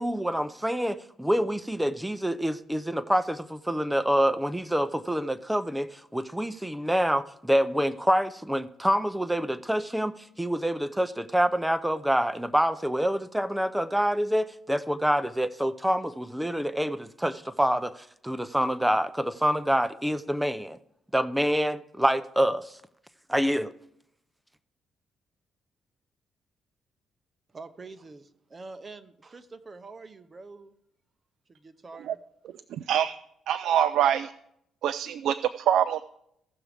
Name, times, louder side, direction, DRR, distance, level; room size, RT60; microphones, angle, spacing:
voice 1, 0.0-20.8 21.1-22.8 23.3-23.7, equal, 5° right, 0.5 m, -26 dB
voice 2, 27.5-30.7 31.5-32.2, right 3 dB, 30° right, 0.8 m, -45 dB
voice 3, 32.7-33.2 33.5-34.3 34.8-36.0, right 10 dB, 75° right, 0.3 m, -25 dB
15.5 x 6.1 x 3.4 m
cardioid pair, 90°, 0 cm